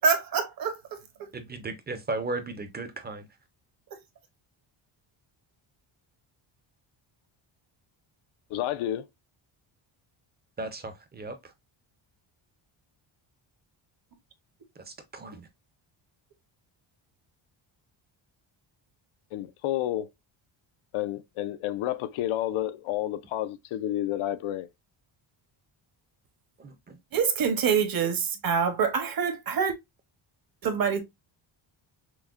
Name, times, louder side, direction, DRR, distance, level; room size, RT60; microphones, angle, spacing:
voice 1, 0.0-1.3 27.1-29.7 30.6-31.0, right 6 dB, 45° right, 0.9 m, -26 dB
voice 2, 1.3-3.3 10.6-11.5 14.8-15.5 26.6-27.0, right 3 dB, 20° right, 0.5 m, -36 dB
voice 3, 8.5-9.0 19.3-20.1 20.9-24.7, left 13 dB, 85° left, 0.6 m, -30 dB
5.9 x 2.1 x 2.4 m
cardioid pair, 165°, 48 cm